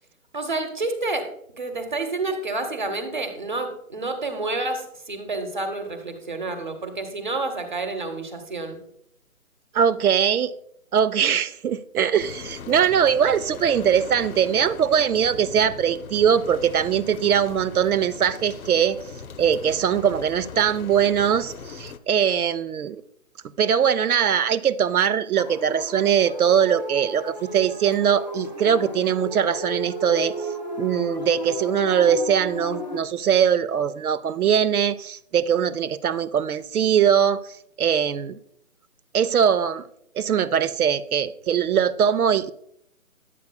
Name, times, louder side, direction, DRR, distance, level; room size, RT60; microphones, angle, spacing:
voice 1, 0.3-1.3 1.6-8.8, right 2 dB, 35° right, 0.9 m, -29 dB
voice 2, 9.7-10.5 10.9-19.0 19.4-23.0 23.6-30.4 30.8-37.4 37.8-38.4 39.1-39.8 40.2-42.5, right 8 dB, 85° right, 0.6 m, -21 dB
sound 1, 12.2-22.0, left 6 dB, 75° left, 0.7 m, -40 dB
sound 2, 25.4-33.0, left 1 dB, 30° left, 0.6 m, -34 dB
11.0 x 8.3 x 2.2 m
hypercardioid pair, 180°, 43 cm